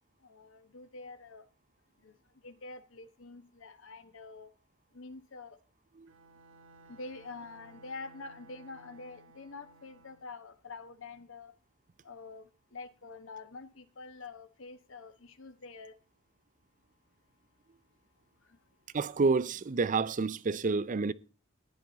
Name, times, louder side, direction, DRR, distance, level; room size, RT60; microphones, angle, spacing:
voice 1, 0.3-1.4 2.0-2.1 2.4-4.5 4.9-5.6 6.9-11.5 12.0-12.5 12.7-15.9, left 3 dB, 65° left, 1.1 m, -46 dB
Bowed string instrument, 6.1-10.4, right 2 dB, 70° right, 1.2 m, -57 dB
voice 2, 18.9-21.1, right 4 dB, 40° right, 0.5 m, -29 dB
15.0 x 10.0 x 3.9 m
head